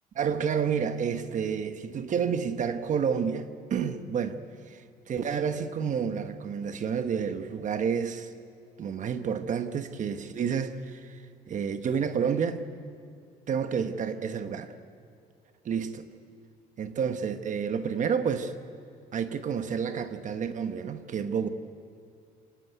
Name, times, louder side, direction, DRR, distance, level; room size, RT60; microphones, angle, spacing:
voice 1, 0.1-4.4 4.7-8.3 8.8-12.6 13.5-14.8 15.6-16.1 16.8-18.5 19.1-21.5, right 7 dB, 50° right, 9 dB, 1.2 m, -30 dB
26.5 x 16.0 x 9.2 m, 2.3 s
cardioid pair, 110°, 17 cm